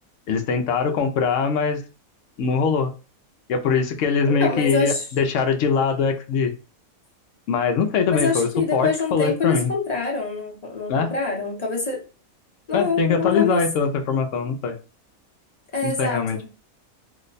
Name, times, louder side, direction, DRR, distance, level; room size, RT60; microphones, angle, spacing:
voice 1, 0.3-1.8 2.4-2.9 3.5-6.5 7.5-9.7 10.9-11.1 12.7-14.8 15.8-16.4, left 5 dB, 70° left, 6 dB, 0.9 m, -22 dB
voice 2, 4.3-5.0 8.1-12.0 12.7-13.6 15.7-16.5, left 4 dB, 35° left, -2 dB, 0.8 m, -25 dB
2.8 x 2.1 x 3.9 m, 0.34 s
omnidirectional pair, 1.5 m